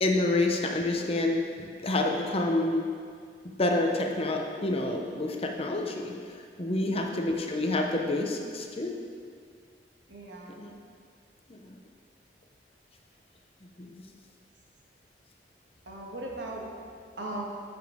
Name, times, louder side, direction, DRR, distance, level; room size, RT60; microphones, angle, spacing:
voice 1, 0.0-2.8 3.6-6.1 6.6-8.9 10.6-10.7 11.5-11.8 13.6-14.0, left 2 dB, 35° left, 2 dB, 0.7 m, -28 dB
voice 2, 6.7-7.0 10.1-10.6 15.8-16.7 17.2-17.4, right 2 dB, 85° right, -2 dB, 1.5 m, -38 dB
9.9 x 6.0 x 3.6 m, 2.1 s
head